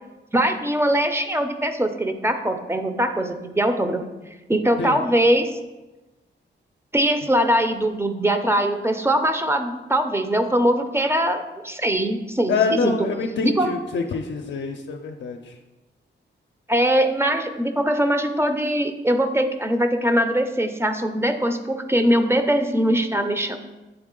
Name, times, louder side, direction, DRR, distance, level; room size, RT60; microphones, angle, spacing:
voice 1, 0.3-4.0 4.5-5.5 6.9-12.9 13.4-13.7 16.7-23.6, right 1 dB, 15° right, 7 dB, 0.5 m, -21 dB
voice 2, 12.5-15.6, left 5 dB, 70° left, 2 dB, 0.5 m, -26 dB
7.9 x 3.7 x 3.7 m, 1.1 s
cardioid pair, 90°, 19 cm